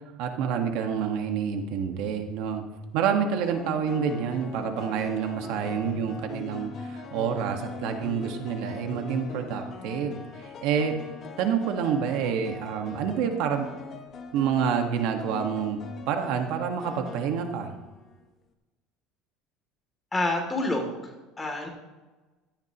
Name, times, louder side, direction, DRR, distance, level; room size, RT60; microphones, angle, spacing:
voice 1, 0.2-2.6 2.9-11.0 11.4-13.7 14.3-15.8 16.1-17.7, right 7 dB, 70° right, 5 dB, 1.6 m, -28 dB
sound 1, 1.8-2.1 3.4-18.2, left 5 dB, 35° left, 1.4 m, -42 dB
voice 2, 20.1-21.7, left 2 dB, 15° left, 2 dB, 2.9 m, -28 dB
16.5 x 14.5 x 3.1 m, 1.2 s
cardioid pair, 140°, 0 cm